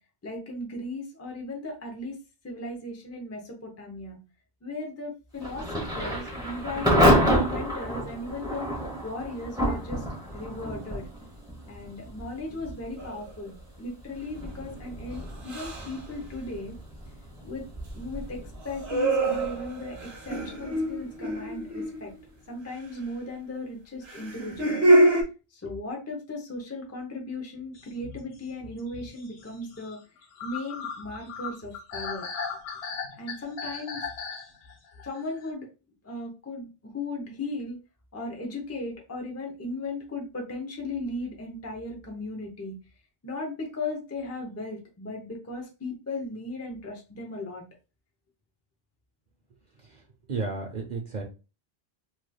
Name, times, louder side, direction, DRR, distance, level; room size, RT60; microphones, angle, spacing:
voice 1, 0.2-2.2 2.4-4.2 4.6-10.0 10.3-11.1 11.7-16.8 17.4-17.7 17.9-22.1 22.5-24.9 25.5-30.0 30.4-32.3 33.2-34.0 35.0-35.7 36.0-37.8 38.1-42.8 43.2-47.6, left 2 dB, 20° left, 2 dB, 0.6 m, -37 dB
Thunder / Rain, 5.4-22.1, equal, 5° right, 1.0 m, -30 dB
sound 1, 13.0-13.3 15.4-16.0 18.6-22.2 24.0-25.2, right 1 dB, 90° right, 1.1 m, -25 dB
sound 2, 27.8-35.5, left 5 dB, 80° left, 1.0 m, -38 dB
voice 2, 49.8-51.2, right 4 dB, 50° right, 2 dB, 0.7 m, -34 dB
3.2 x 3.1 x 2.2 m, 0.31 s
omnidirectional pair, 1.0 m